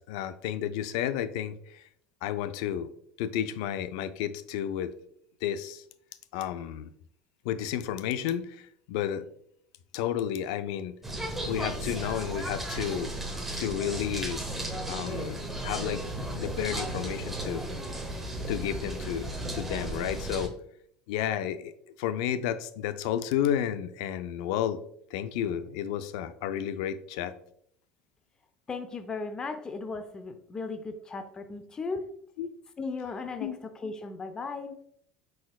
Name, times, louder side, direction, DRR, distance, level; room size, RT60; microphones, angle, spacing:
voice 1, 0.1-1.8 2.2-2.9 3.2-4.9 5.4-5.8 6.3-6.9 7.5-8.6 8.9-9.3 9.9-11.0 11.4-13.1 13.6-14.4 14.9-16.0 16.3-17.6 18.5-19.3 19.5-20.5 21.1-21.7 22.0-24.8 25.1-27.3 32.4-32.5 33.4-33.5, left 10 dB, 80° left, 12 dB, 0.4 m, -31 dB
sound 1, 11.0-20.5, right 1 dB, 5° right, 0.8 m, -35 dB
voice 2, 28.7-32.0 32.8-34.7, left 4 dB, 25° left, 7 dB, 0.5 m, -36 dB
4.6 x 4.2 x 2.3 m, 0.67 s
supercardioid pair, 115°, 3 cm